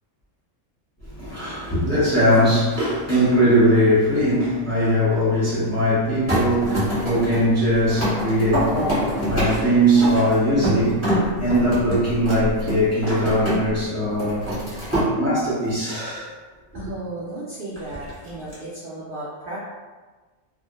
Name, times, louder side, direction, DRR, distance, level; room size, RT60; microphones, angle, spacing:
voice 1, 1.0-14.5 15.1-16.3, equal, 15° left, -11 dB, 0.7 m, -20 dB
sound 1, 6.3-13.8 14.1-15.1 17.8-18.5, equal, 10° right, 0.9 m, -25 dB
voice 2, 16.7-19.6, right 2 dB, 60° right, -7 dB, 0.5 m, -34 dB
2.1 x 2.0 x 2.8 m, 1.3 s
omnidirectional pair, 1.4 m